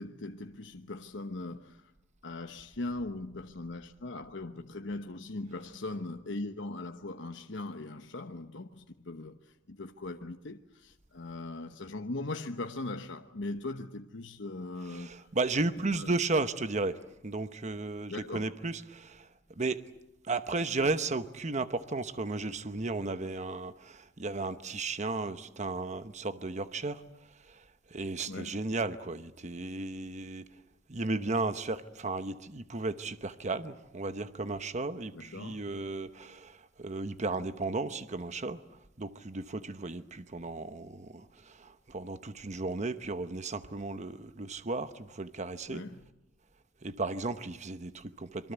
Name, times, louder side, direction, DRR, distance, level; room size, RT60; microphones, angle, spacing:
voice 1, 0.0-1.8 2.2-9.4 9.7-15.1 15.9-16.1 18.1-18.5 28.3-28.6 35.1-35.7 45.7-46.0, left 2 dB, 70° left, 1.1 m, -40 dB
voice 2, 14.9-19.3 19.6-19.8 20.2-27.0 27.5-27.6 27.9-30.4 30.9-38.6 39.0-45.8 46.8-48.5, right 3 dB, 40° right, 1.0 m, -34 dB
26.5 x 23.0 x 8.1 m
head